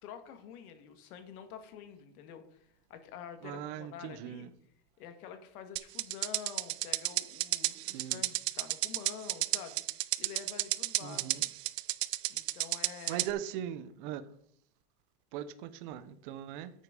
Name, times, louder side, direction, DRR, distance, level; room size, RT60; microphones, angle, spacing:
voice 1, 0.0-4.5 5.0-11.4 12.3-13.3, left 8 dB, 65° left, 8 dB, 1.7 m, -48 dB
voice 2, 3.4-4.5 7.8-8.2 11.0-11.4 13.1-14.2 15.3-16.7, right 11 dB, 35° right, 11 dB, 0.5 m, -40 dB
sound 1, 5.8-13.3, right 19 dB, 80° right, 0.6 m, -32 dB
10.5 x 6.5 x 5.1 m, 0.68 s
supercardioid pair, 170°, 47 cm